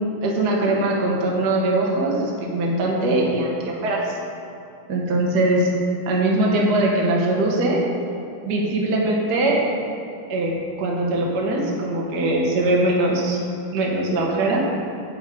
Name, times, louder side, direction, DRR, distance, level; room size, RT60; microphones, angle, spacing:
voice 1, 0.2-4.2 4.9-7.8 8.4-9.6 10.3-13.4 13.7-14.6, right 2 dB, 85° right, -2 dB, 0.9 m, -21 dB
8.6 x 8.4 x 5.3 m, 2.6 s
omnidirectional pair, 4.5 m